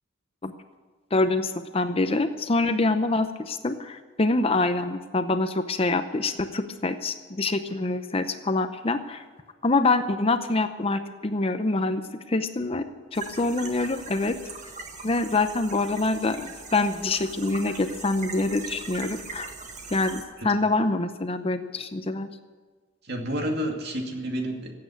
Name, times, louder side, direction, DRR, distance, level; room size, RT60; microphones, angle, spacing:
voice 1, 1.1-9.2 9.6-14.4 15.0-19.5 19.9-22.3, left 2 dB, 30° left, 9 dB, 0.7 m, -25 dB
sound 1, 13.1-20.2, right 4 dB, 35° right, 1.6 m, -41 dB
voice 2, 23.0-24.7, equal, 50° right, 2 dB, 2.3 m, -30 dB
15.5 x 8.7 x 9.5 m, 1.4 s
head